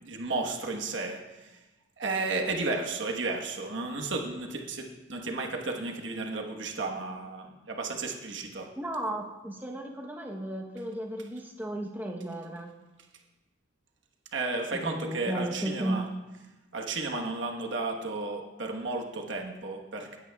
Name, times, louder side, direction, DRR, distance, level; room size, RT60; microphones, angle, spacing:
voice 1, 0.0-1.6 2.0-8.7 14.3-16.1 16.7-20.2, right 3 dB, 65° right, 2 dB, 1.2 m, -33 dB
voice 2, 8.8-12.7 14.7-16.1, right 1 dB, 10° right, 0 dB, 0.9 m, -34 dB
17.0 x 9.3 x 2.3 m, 1.1 s
head